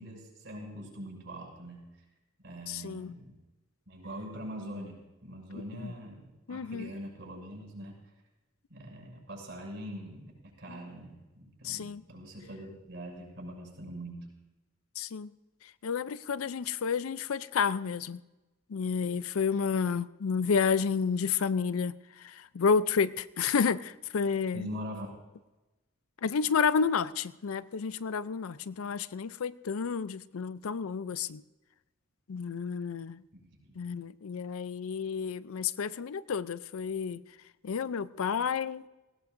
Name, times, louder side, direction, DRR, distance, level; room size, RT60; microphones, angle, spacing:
voice 1, 0.0-2.0 2.4-3.3 3.9-8.1 8.7-14.3 24.5-25.1 33.3-33.8, equal, 60° right, 6.3 m, -43 dB
voice 2, 2.7-3.1 5.5-5.9 6.5-6.9 10.7-10.8 11.6-12.0 15.0-15.3 15.8-18.2 18.7-24.7 26.2-31.4 32.3-33.2 33.8-37.2 37.6-38.9, left 6 dB, 85° left, 0.5 m, -30 dB
18.5 x 17.5 x 2.6 m
head